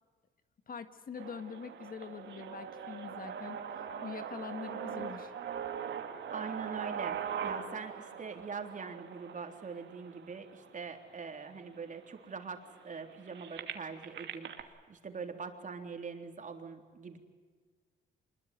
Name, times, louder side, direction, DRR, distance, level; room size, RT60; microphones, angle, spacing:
voice 1, 0.7-3.6 4.0-5.3, left 6 dB, 45° left, 10 dB, 1.7 m, -44 dB
sound 1, 1.2-11.1 11.8-11.9 12.1-14.6, right 8 dB, 65° right, 2.6 m, -41 dB
voice 2, 6.3-17.2, right 5 dB, 40° right, 5 dB, 3.7 m, -43 dB
25.5 x 22.0 x 9.5 m, 1.5 s
cardioid pair, 90°, 20 cm